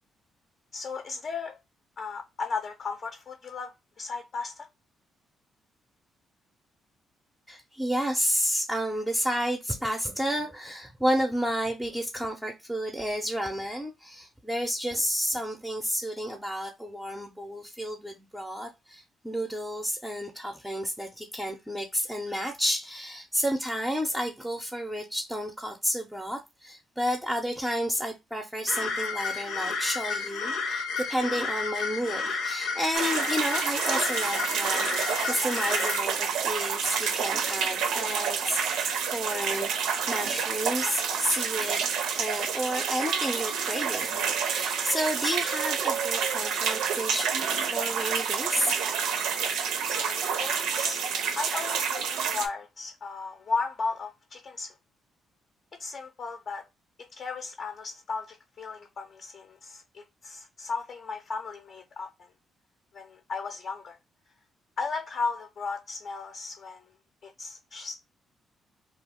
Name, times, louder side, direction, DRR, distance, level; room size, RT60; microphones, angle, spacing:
voice 1, 0.7-1.6 2.0-4.7 49.9-51.0 51.3-54.7 55.8-56.6 57.2-62.3 62.9-64.0 64.8-66.9 67.2-68.0, left 4 dB, 50° left, 0.5 m, -35 dB
voice 2, 7.5-38.6 39.1-39.7 40.1-41.9 42.2-47.3 47.6-48.8 49.9-50.0, equal, 5° right, 0.5 m, -31 dB
sound 1, 28.7-36.0, left 4 dB, 85° left, 0.8 m, -31 dB
sound 2, 32.9-52.5, right 7 dB, 85° right, 0.5 m, -29 dB
2.4 x 2.2 x 3.5 m
cardioid pair, 90°, 0 cm